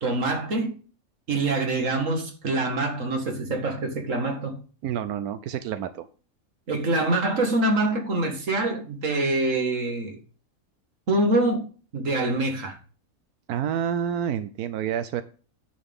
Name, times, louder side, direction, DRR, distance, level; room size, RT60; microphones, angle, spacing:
voice 1, 0.0-0.7 1.3-4.6 6.7-10.2 11.1-11.6 11.9-12.8, right 2 dB, 60° right, 2.2 m, -25 dB
voice 2, 4.8-6.1 13.5-15.2, right 9 dB, 85° right, 1.1 m, -28 dB
10.5 x 7.9 x 3.6 m
omnidirectional pair, 1.6 m